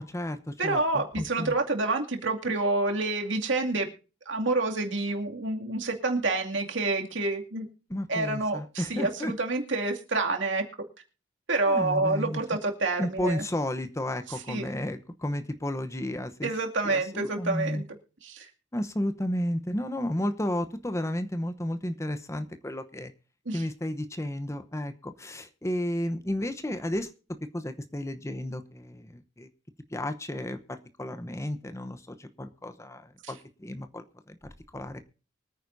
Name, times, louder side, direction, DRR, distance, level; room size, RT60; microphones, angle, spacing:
voice 1, 0.0-1.5 7.9-9.3 11.7-12.4 13.0-16.5 16.8-17.8 18.7-23.1 23.5-27.1 27.5-29.5 29.9-34.4 34.7-35.0, left 1 dB, 15° left, 9 dB, 0.9 m, -32 dB
voice 2, 0.6-3.9 4.3-7.7 8.1-10.6 11.5-13.4 14.5-14.7 16.4-17.8 18.2-18.5 23.5-23.6 33.2-33.3, right 2 dB, 70° right, 3 dB, 2.5 m, -28 dB
24.0 x 9.3 x 2.7 m, 0.35 s
head